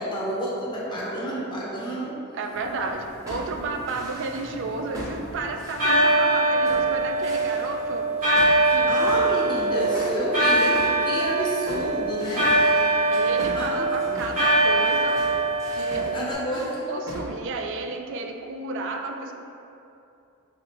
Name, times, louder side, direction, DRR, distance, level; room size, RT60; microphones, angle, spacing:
voice 1, 0.0-2.1 3.7-3.8 8.6-12.5 13.5-14.3 16.1-16.9, equal, 20° left, -6 dB, 0.6 m, -30 dB
voice 2, 2.3-8.1 8.7-8.9 13.1-15.2 15.7-19.3, right 3 dB, 60° right, 4 dB, 0.3 m, -32 dB
sound 1, 2.8-4.5 4.9-6.3 6.6-7.8 8.4-16.2 16.5-16.8 17.1-17.3, equal, 15° right, 0.7 m, -39 dB
sound 2, 3.7-5.2 5.8-16.3, right 2 dB, 80° right, 1.3 m, -22 dB
3.5 x 3.3 x 2.9 m, 2.7 s
head